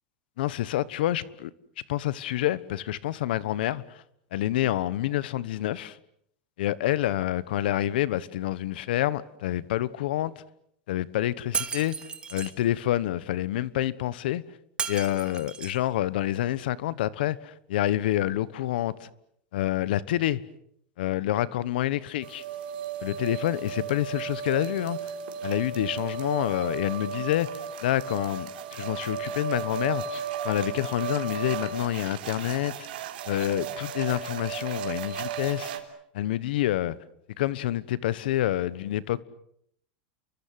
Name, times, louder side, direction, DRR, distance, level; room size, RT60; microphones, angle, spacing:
voice 1, 0.4-1.5 1.9-4.0 4.3-6.0 6.6-10.4 10.9-12.0 12.3-14.4 14.9-19.1 19.5-20.4 21.0-22.4 23.0-25.1 25.4-28.5 28.8-32.9 33.3-35.7 36.1-36.9 37.4-39.2, left 13 dB, 75° left, 1.2 m, -28 dB
Shatter, 11.5-12.5 14.8-15.8, right 6 dB, 20° right, 2.3 m, -33 dB
sound 1, 22.2-35.8, right 7 dB, 80° right, 3.8 m, -35 dB
30.0 x 23.5 x 7.7 m
supercardioid pair, 145°, 5 cm